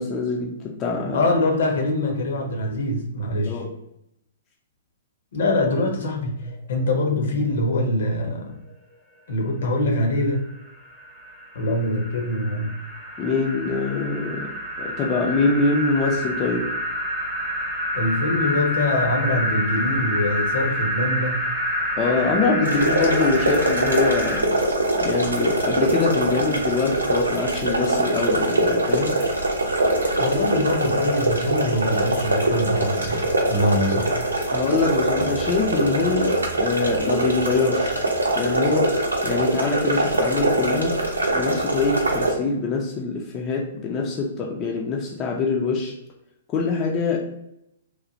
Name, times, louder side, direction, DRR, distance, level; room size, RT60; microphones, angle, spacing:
voice 1, 0.0-1.2 3.5-3.7 13.2-14.5 14.8-16.7 22.0-24.6 24.9-29.2 34.5-38.0 38.3-39.0 39.2-41.0 41.3-45.9 46.5-47.2, left 4 dB, 25° left, -1 dB, 0.4 m, -24 dB
voice 2, 1.1-3.6 5.3-8.6 9.3-10.4 11.5-12.7 17.9-21.5 30.2-34.2, left 1 dB, 60° left, 2 dB, 0.7 m, -24 dB
sound 1, 6.5-6.6 6.8-6.9 7.3-7.4 10.3-24.4, equal, 10° right, 0.8 m, -28 dB
sound 2, 22.6-42.3, right 1 dB, 80° right, 0.6 m, -23 dB
3.1 x 2.1 x 2.6 m, 0.82 s
figure-of-eight pair, 115°, 0 cm